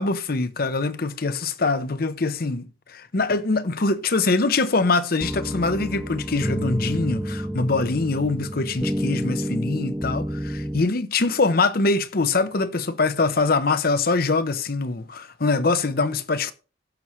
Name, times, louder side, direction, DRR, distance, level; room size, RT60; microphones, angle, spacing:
voice 1, 0.0-16.5, left 3 dB, 55° left, 0.8 m, -23 dB
sound 1, 5.2-10.8, equal, 5° right, 0.5 m, -29 dB
15.5 x 6.2 x 3.1 m
head